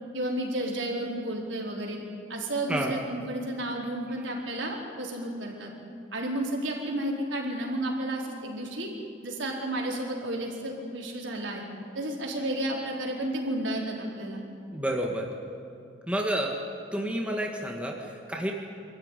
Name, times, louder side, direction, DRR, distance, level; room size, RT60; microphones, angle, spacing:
voice 1, 0.1-2.0 2.3-5.7 6.1-8.9 9.2-11.6 11.9-14.4, right 1 dB, 75° right, -1 dB, 4.3 m, -32 dB
voice 2, 14.7-15.3 16.1-16.5 16.9-18.5, right 1 dB, 5° right, 0 dB, 1.7 m, -30 dB
25.5 x 13.5 x 9.8 m, 2.6 s
head